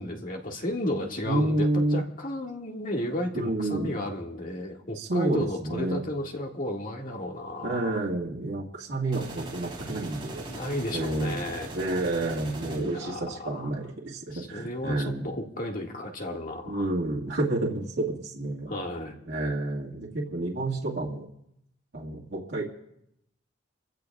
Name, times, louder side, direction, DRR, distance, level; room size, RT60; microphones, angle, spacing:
voice 1, 0.0-8.0 10.5-11.7 12.6-13.7 14.3-16.9 18.7-19.1, left 1 dB, 50° left, 1 dB, 1.9 m, -33 dB
voice 2, 1.2-2.0 3.3-4.0 5.0-6.0 7.6-10.4 10.9-15.3 16.7-18.7 19.3-21.3 21.9-22.6, right 2 dB, 90° right, -4 dB, 1.9 m, -29 dB
sound 1, 9.1-13.1, right 2 dB, 30° right, 3.5 m, -40 dB
29.0 x 16.0 x 2.4 m, 0.79 s
head